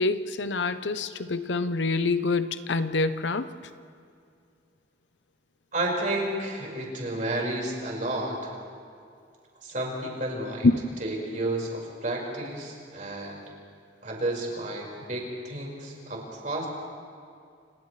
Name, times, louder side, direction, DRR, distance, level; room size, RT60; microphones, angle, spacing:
voice 1, 0.0-3.5 10.6-10.8, left 3 dB, 80° left, 11 dB, 0.8 m, -25 dB
voice 2, 5.7-8.5 9.6-10.7 11.0-13.4 14.0-16.7, right 1 dB, 45° right, -2 dB, 5.2 m, -31 dB
30.0 x 28.0 x 3.3 m, 2.3 s
head